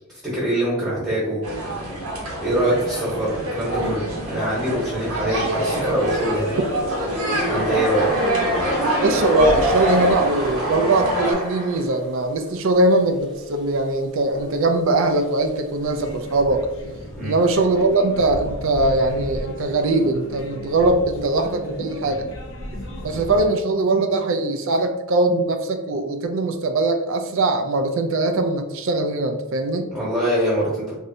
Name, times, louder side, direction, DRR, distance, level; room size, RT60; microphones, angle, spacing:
voice 1, 0.1-1.4 2.4-6.6 7.5-8.1 17.2-17.4 29.9-30.9, right 1 dB, 20° right, -7 dB, 1.1 m, -24 dB
sound 1, 1.4-11.3, equal, 85° right, 0.9 m, -25 dB
sound 2, 5.9-12.6 12.9-13.5 13.8-13.9 14.3-14.5 15.1-16.4, right 1 dB, ahead, 0.7 m, -30 dB
voice 2, 9.0-16.7 17.2-22.3 23.0-29.9, right 2 dB, 60° right, 6 dB, 0.4 m, -21 dB
sound 3, 15.8-23.5, equal, 60° left, 0.7 m, -35 dB
3.2 x 2.6 x 2.6 m, 1.1 s
head